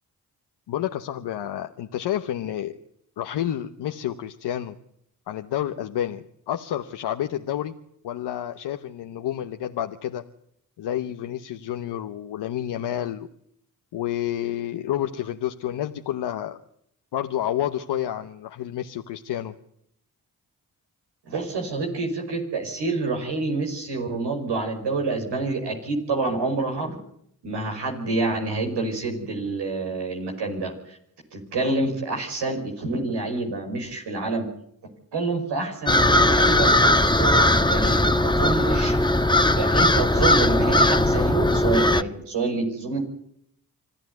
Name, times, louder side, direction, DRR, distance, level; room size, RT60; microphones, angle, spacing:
voice 1, 0.7-2.8 3.2-4.8 5.3-7.7 8.0-10.2 10.8-13.3 13.9-16.6 17.1-19.5, left 11 dB, 90° left, 6 dB, 1.0 m, -29 dB
voice 2, 21.3-27.0 27.4-31.0 31.3-34.5 35.1-39.0 39.6-43.0, right 3 dB, 90° right, 2 dB, 5.4 m, -27 dB
sound 1, 35.9-42.0, left 1 dB, 10° left, 1.4 m, -19 dB
26.5 x 14.0 x 9.4 m, 0.72 s
supercardioid pair, 40°, 40 cm